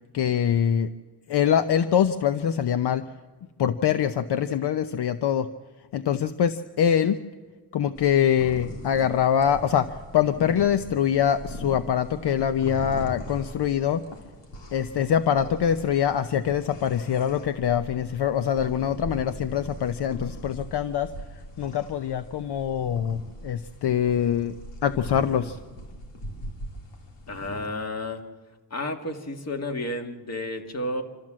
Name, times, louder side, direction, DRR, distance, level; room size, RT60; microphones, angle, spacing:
voice 1, 0.1-0.9 1.3-3.1 3.6-5.5 5.9-7.2 7.7-14.0 14.7-21.1 21.6-24.5 24.8-25.6, left 9 dB, 70° left, 11 dB, 0.8 m, -24 dB
sound 1, 7.9-27.6, equal, 85° left, 3.4 m, -41 dB
voice 2, 27.3-28.2 28.7-31.0, left 1 dB, 35° left, 5 dB, 2.0 m, -31 dB
26.0 x 13.5 x 7.5 m, 1.3 s
cardioid pair, 95°, 42 cm